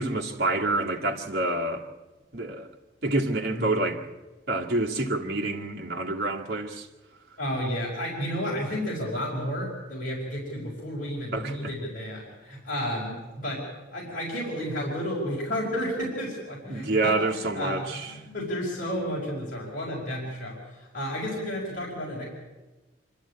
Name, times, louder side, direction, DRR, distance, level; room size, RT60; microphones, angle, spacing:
voice 1, 0.0-1.9 2.3-2.7 3.0-4.0 4.5-6.9 11.3-11.7 16.7-18.1, right 2 dB, 55° right, 2.1 m, -27 dB
voice 2, 7.4-13.7 13.9-22.3, equal, 45° left, 5.1 m, -32 dB
26.0 x 13.0 x 8.6 m
head